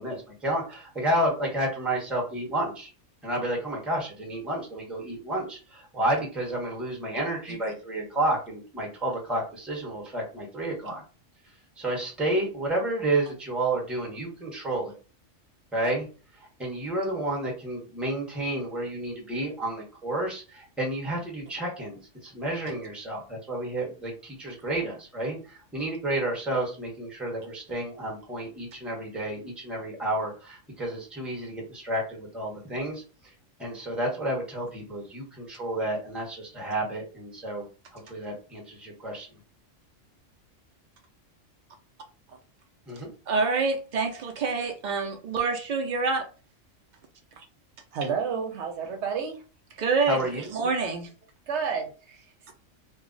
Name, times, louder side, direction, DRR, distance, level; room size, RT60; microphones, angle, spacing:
voice 1, 0.0-2.9 3.2-11.0 11.8-15.0 15.7-16.1 16.6-33.3 33.6-37.7 37.9-39.4 42.9-43.1 50.1-50.5, right 1 dB, ahead, 0.7 m, -31 dB
voice 2, 43.3-46.2 49.8-50.2 50.5-51.1, right 4 dB, 90° right, 0.4 m, -26 dB
voice 3, 47.9-49.4 49.7-49.9 51.5-52.5, right 6 dB, 65° right, 0.8 m, -31 dB
2.3 x 2.0 x 3.7 m
omnidirectional pair, 1.3 m